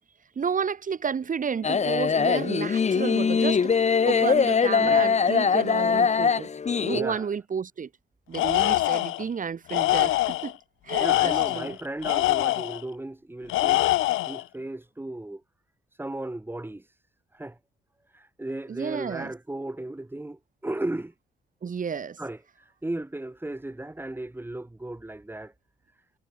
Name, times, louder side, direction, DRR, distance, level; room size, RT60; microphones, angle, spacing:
voice 1, 0.4-6.5 6.8-7.9 8.3-10.5 10.8-11.8 18.7-19.3 21.6-22.2, right 6 dB, 40° right, 2.3 m, -31 dB
sound 1, 1.6-7.0, left 6 dB, 35° left, 1.3 m, -22 dB
voice 2, 4.6-5.1 6.9-7.3 11.0-13.9 14.2-15.4 15.9-17.0 17.3-17.6 18.1-21.1 22.2-25.5, right 1 dB, 10° right, 4.3 m, -36 dB
Tools, 8.3-9.2 9.7-10.5 10.9-12.8 13.5-14.4, left 17 dB, 90° left, 0.9 m, -24 dB
cardioid pair, 90°, 20 cm